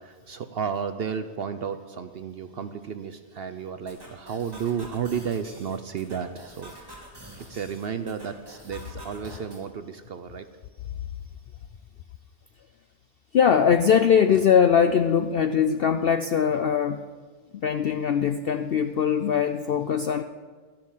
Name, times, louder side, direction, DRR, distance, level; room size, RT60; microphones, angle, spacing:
voice 1, 0.0-7.0 7.5-10.5 14.3-14.4, right 7 dB, 60° right, 10 dB, 0.7 m, -33 dB
sound 1, 3.9-9.6, right 1 dB, 15° right, 2.9 m, -47 dB
voice 2, 13.3-17.0 17.5-20.2, left 7 dB, 65° left, 9 dB, 0.5 m, -21 dB
12.5 x 10.5 x 7.3 m, 1.5 s
omnidirectional pair, 1.5 m